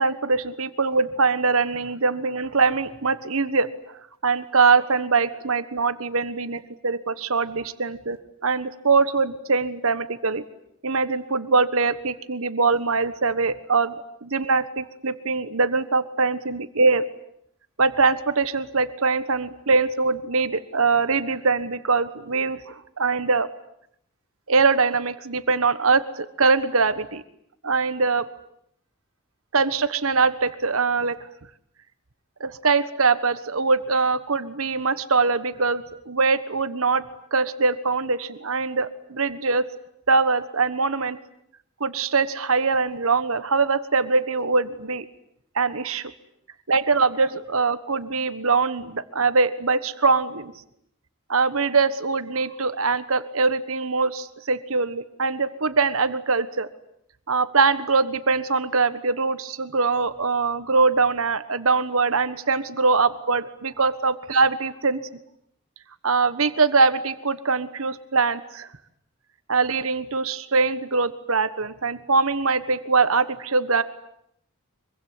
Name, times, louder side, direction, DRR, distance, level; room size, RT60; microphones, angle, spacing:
voice 1, 0.0-3.7 4.2-10.4 10.8-13.9 14.2-17.0 17.8-23.5 24.5-27.2 27.6-28.3 29.5-31.2 32.4-37.0 37.3-39.7 40.1-41.2 41.8-45.0 45.5-46.1 46.7-50.5 51.3-56.7 57.3-65.0 66.0-68.7 69.5-73.8, right 4 dB, 70° right, 12 dB, 1.4 m, -22 dB
25.0 x 23.5 x 9.9 m, 0.73 s
head